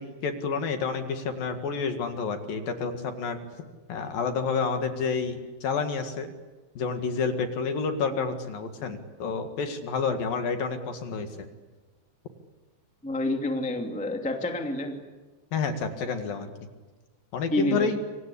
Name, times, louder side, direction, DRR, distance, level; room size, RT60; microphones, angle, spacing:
voice 1, 0.0-3.4 3.9-6.3 6.7-11.5 15.5-16.5 17.3-18.0, left 5 dB, 55° left, 7 dB, 3.2 m, -29 dB
voice 2, 13.0-15.0 17.5-17.9, left 1 dB, 5° left, 3 dB, 1.0 m, -28 dB
28.0 x 25.0 x 8.5 m, 1.3 s
omnidirectional pair, 5.4 m